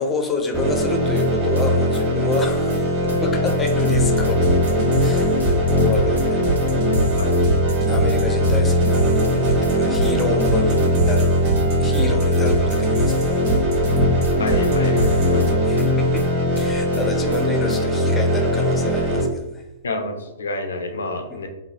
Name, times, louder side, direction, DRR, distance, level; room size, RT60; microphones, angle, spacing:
voice 1, 0.0-4.4 5.0-6.9 7.9-11.4 11.8-13.4 15.6-19.6 21.3-21.4, left 4 dB, 20° left, 3 dB, 0.5 m, -29 dB
sound 1, 0.5-19.2, equal, 35° right, 1.1 m, -20 dB
sound 2, 0.9-1.3 1.6-2.0 2.3-2.4 2.7-2.8 3.1-4.0 4.2-4.7 5.0-5.1 5.4-6.3 6.6-7.0 7.3-7.4 7.7-7.8 8.1-9.0 9.2-9.7 10.0-10.1 10.4-11.3 11.6-12.0 12.3-12.4 12.7-12.8 13.1-14.0 14.2-14.7 15.0-15.1 15.4-16.3 16.6-17.0 17.3-17.4 17.7-17.8, right 1 dB, 90° right, 0.7 m, -35 dB
sound 3, 3.6-15.5, right 2 dB, 55° right, 0.8 m, -25 dB
voice 2, 14.4-15.6 17.2-17.4 19.8-21.5, left 2 dB, 75° left, 5 dB, 0.5 m, -28 dB
3.1 x 2.3 x 2.8 m, 0.99 s
hypercardioid pair, 115°, 0 cm